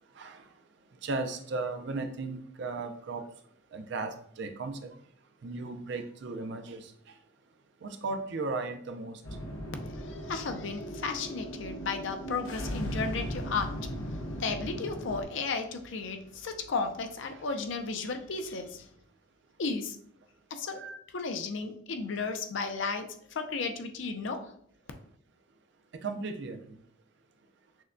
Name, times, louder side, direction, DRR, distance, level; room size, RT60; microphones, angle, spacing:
voice 1, 1.0-3.2 3.7-4.9 5.4-6.9 7.8-9.2 20.8-21.0 26.0-26.6, right 3 dB, 55° right, 0.4 m, -36 dB
sound 1, 9.2-15.2, equal, 80° left, 0.9 m, -37 dB
voice 2, 9.8-18.9 19.6-20.0 20.5-20.8 21.1-24.6, left 4 dB, 60° left, 0.5 m, -34 dB
6.1 x 2.2 x 2.5 m
head